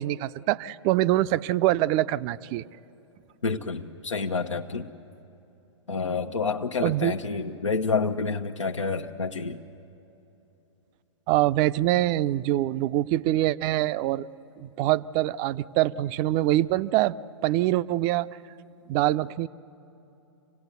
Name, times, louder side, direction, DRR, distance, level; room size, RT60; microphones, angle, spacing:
voice 1, 0.0-2.6 6.8-7.1 11.3-14.3 14.6-17.2 17.4-18.3 18.9-19.5, right 15 dB, 30° right, 15 dB, 0.5 m, -24 dB
voice 2, 3.4-4.9 5.9-9.6, left 4 dB, 90° left, 3 dB, 0.9 m, -28 dB
26.5 x 17.0 x 8.2 m, 3.0 s
hypercardioid pair, 115°, 15 cm